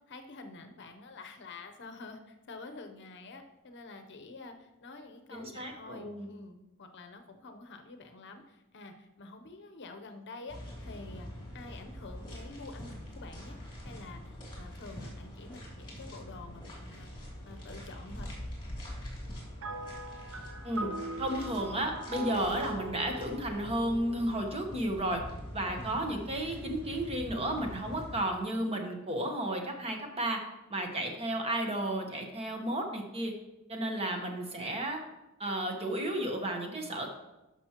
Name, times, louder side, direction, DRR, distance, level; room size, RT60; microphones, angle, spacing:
voice 1, 0.0-11.3 11.5-13.6 13.8-18.3 25.6-26.0, left 3 dB, 55° left, 6 dB, 0.8 m, -48 dB
voice 2, 5.3-6.3 20.6-20.9 21.2-25.2 25.5-30.4 30.7-33.3 33.7-35.0 35.4-37.1, right 1 dB, 30° right, 3 dB, 1.1 m, -33 dB
sound 1, 10.5-28.2, equal, 20° left, 2.7 m, -44 dB
sound 2, 19.6-25.1, right 2 dB, 65° right, 0.7 m, -41 dB
11.5 x 6.1 x 3.0 m, 0.98 s
head